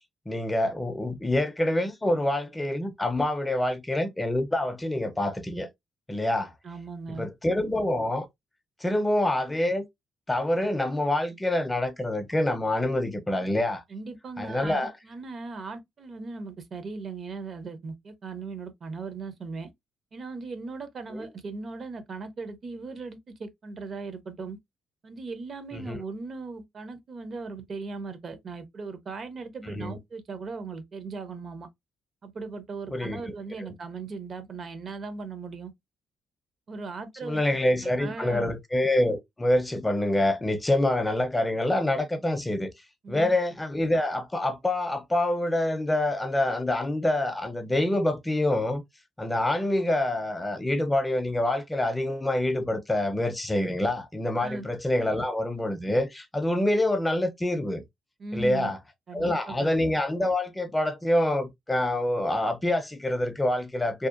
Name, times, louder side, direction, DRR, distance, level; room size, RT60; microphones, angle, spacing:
voice 1, 0.3-5.7 6.1-6.5 7.2-8.3 8.8-9.8 10.3-13.8 14.4-14.9 25.7-26.0 29.7-30.0 32.9-33.2 37.2-42.7 43.1-48.8 49.2-57.8 58.3-58.8 59.1-64.1, left 1 dB, 15° left, 0.4 m, -26 dB
voice 2, 6.6-7.3 13.9-19.7 20.1-24.6 25.0-31.7 32.2-35.7 36.7-38.5 43.0-43.3 54.4-54.7 58.2-58.7 59.1-59.7, right 4 dB, 50° right, 0.6 m, -38 dB
2.7 x 2.0 x 2.4 m
cardioid pair, 90°, 0 cm